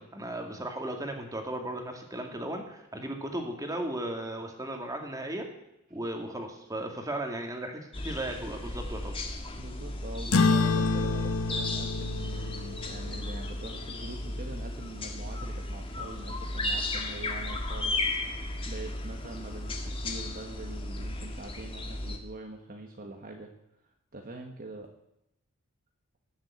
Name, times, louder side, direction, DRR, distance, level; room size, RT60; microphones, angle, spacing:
voice 1, 0.0-5.5 5.9-9.1, right 1 dB, 15° right, 3 dB, 2.3 m, -36 dB
sound 1, 7.9-22.2, left 2 dB, 25° left, 1.7 m, -35 dB
voice 2, 9.5-18.0 18.3-23.5 24.1-24.9, right 2 dB, 40° right, 2 dB, 1.5 m, -44 dB
sound 2, 10.3-15.2, left 4 dB, 75° left, 1.0 m, -29 dB
18.5 x 7.4 x 8.7 m, 0.84 s
head